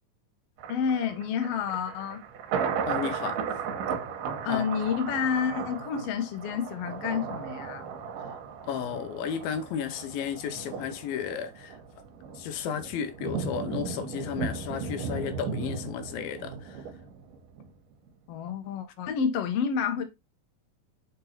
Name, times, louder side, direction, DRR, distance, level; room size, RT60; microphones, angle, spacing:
Thunder, 0.6-17.7 18.1-18.2, right 6 dB, 70° right, 2.4 m, -36 dB
voice 1, 0.7-2.2 4.4-7.9 18.3-20.0, left 7 dB, 65° left, 1.6 m, -29 dB
voice 2, 2.9-3.4 4.5-4.6 8.6-11.8 12.4-16.8, left 8 dB, 85° left, 2.6 m, -33 dB
6.9 x 4.0 x 4.2 m
omnidirectional pair, 4.1 m